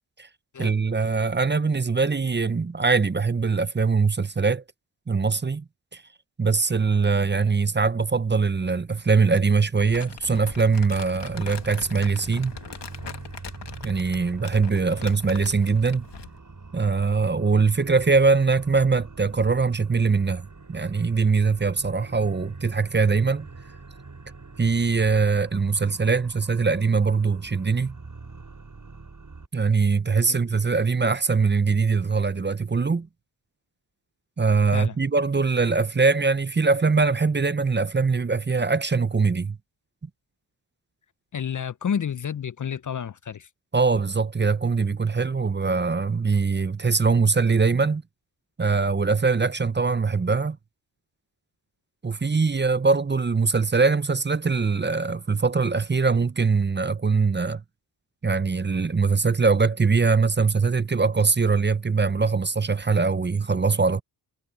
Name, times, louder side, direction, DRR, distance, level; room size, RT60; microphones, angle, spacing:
voice 1, 0.6-4.6 5.1-5.6 5.9-6.0 6.4-12.6 13.8-16.0 16.7-23.5 24.6-28.0 29.5-33.1 34.4-39.6 43.7-48.0 48.6-50.6 52.0-57.6 58.2-64.0, right 4 dB, 25° right, 0.8 m, -22 dB
Crumpling crinkling, 9.8-16.4, left 7 dB, 70° left, 2.5 m, -41 dB
sound 1, 10.3-29.5, right 3 dB, 45° right, 7.4 m, -43 dB
voice 2, 41.3-43.5, left 8 dB, 45° left, 0.6 m, -30 dB
cardioid pair, 50°, 43 cm